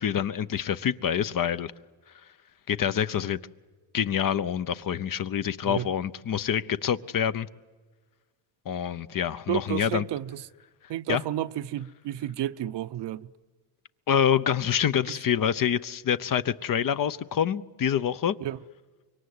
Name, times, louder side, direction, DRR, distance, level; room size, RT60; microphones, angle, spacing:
voice 1, 0.0-1.7 2.7-3.4 3.9-7.5 8.7-10.0 11.1-11.2 14.1-18.4, left 8 dB, 45° left, 0.9 m, -26 dB
voice 2, 9.5-10.4 10.9-13.3 15.1-15.2 18.4-18.6, right 13 dB, 60° right, 0.8 m, -31 dB
25.5 x 23.0 x 9.6 m
cardioid pair, 115°, 47 cm